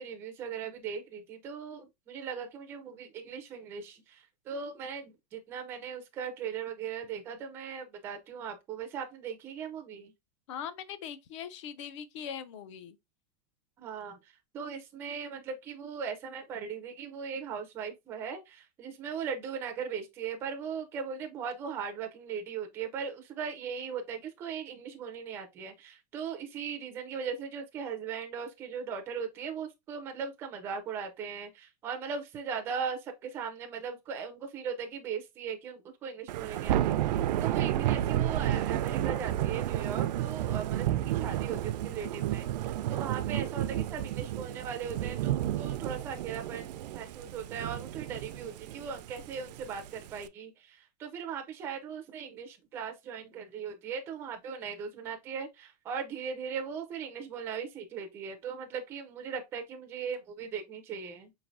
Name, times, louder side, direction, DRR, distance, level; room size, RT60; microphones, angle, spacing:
voice 1, 0.0-10.1 13.8-14.2 14.5-61.3, right 6 dB, 10° right, 0.4 m, -39 dB
voice 2, 10.5-13.0, left 8 dB, 45° left, 0.5 m, -41 dB
Thunder / Rain, 36.3-50.3, right 12 dB, 85° right, 0.4 m, -31 dB
5.2 x 3.1 x 2.5 m
supercardioid pair, 180°, 21 cm